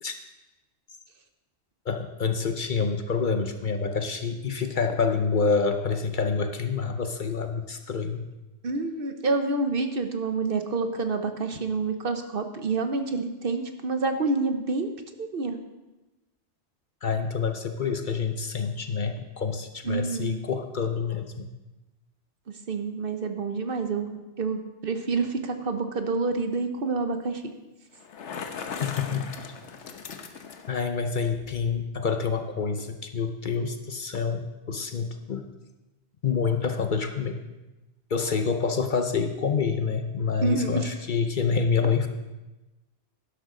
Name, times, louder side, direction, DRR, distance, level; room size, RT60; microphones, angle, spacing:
voice 1, 1.9-8.2 17.0-21.4 28.8-29.3 30.7-35.4 36.2-37.4 38.1-42.1, left 5 dB, 50° left, 7 dB, 0.8 m, -27 dB
voice 2, 8.6-14.9 15.2-15.6 19.8-20.4 22.5-27.5 40.4-40.9, right 3 dB, 55° right, 7 dB, 1.0 m, -28 dB
Bicycle, 27.9-30.8, left 6 dB, 90° left, 1.2 m, -38 dB
11.5 x 11.5 x 3.8 m, 1.1 s
omnidirectional pair, 1.2 m